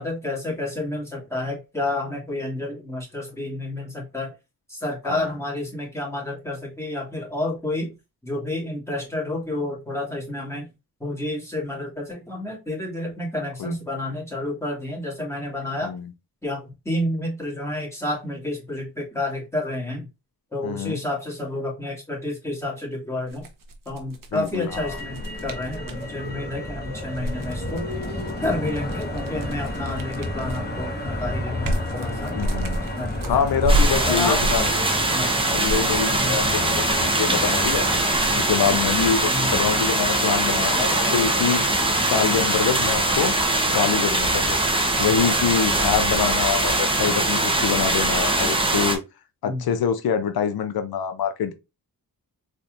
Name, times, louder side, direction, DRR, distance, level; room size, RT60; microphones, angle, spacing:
voice 1, 0.0-4.3 4.7-7.9 8.2-10.7 11.0-15.9 16.4-20.1 20.5-23.4 23.9-27.8 28.4-32.3 32.8-33.6 34.0-34.4 35.1-35.4 36.2-36.5 39.3-39.5 49.4-49.7, left 1 dB, 10° left, 2.2 m, -30 dB
voice 2, 20.6-21.0 24.3-25.0 32.3-32.9 33.3-35.0 35.5-37.9 38.3-41.6 42.0-43.4 43.7-44.6 45.0-49.0 49.4-51.5, left 7 dB, 85° left, 0.6 m, -25 dB
sound 1, 23.3-26.1 27.0-30.8 31.2-39.3, right 1 dB, 65° right, 1.0 m, -30 dB
Motor vehicle (road), 24.7-43.2, left 1 dB, 25° left, 1.4 m, -32 dB
sound 2, 33.7-49.0, right 2 dB, 15° right, 1.0 m, -22 dB
4.2 x 3.3 x 2.5 m
wide cardioid pair, 80°, 36 cm